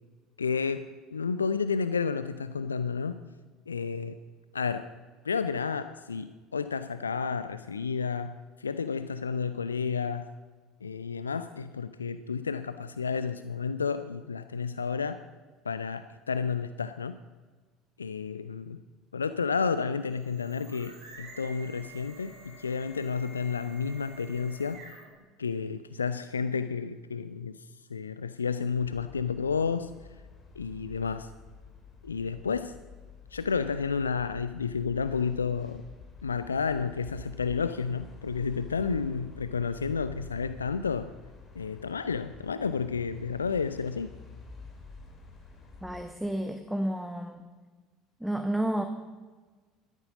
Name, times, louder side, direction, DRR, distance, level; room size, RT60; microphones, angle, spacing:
voice 1, 0.4-3.2 3.7-4.2 4.5-4.9 5.2-10.3 10.8-15.2 15.6-17.2 18.0-18.8 19.1-24.8 25.4-29.9 30.6-31.3 32.0-32.7 33.3-35.8 36.2-41.1 41.6-44.1, left 5 dB, 85° left, 13 dB, 0.3 m, -31 dB
Electric skateboard, 19.9-25.2, right 2 dB, 55° right, 4.3 m, -50 dB
sound 1, 28.7-46.0, left 4 dB, 30° left, 2.7 m, -49 dB
voice 2, 45.8-47.4 48.2-48.8, right 1 dB, 5° right, 7 dB, 0.9 m, -31 dB
13.0 x 11.0 x 5.2 m, 1.4 s
figure-of-eight pair, 65°, 0 cm